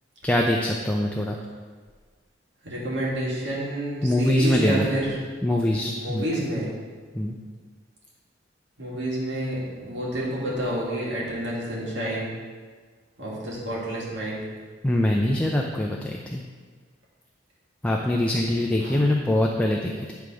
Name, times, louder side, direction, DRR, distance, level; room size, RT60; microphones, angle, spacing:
voice 1, 0.2-1.4 4.0-4.9 5.4-6.2 7.1-7.4 14.8-16.4 17.8-20.1, left 1 dB, 5° left, -1 dB, 0.5 m, -23 dB
voice 2, 2.6-5.1 6.0-6.7 8.8-12.3 13.2-14.4 18.8-19.0, right 1 dB, 70° right, -5 dB, 2.2 m, -29 dB
9.5 x 3.5 x 6.1 m, 1.5 s
head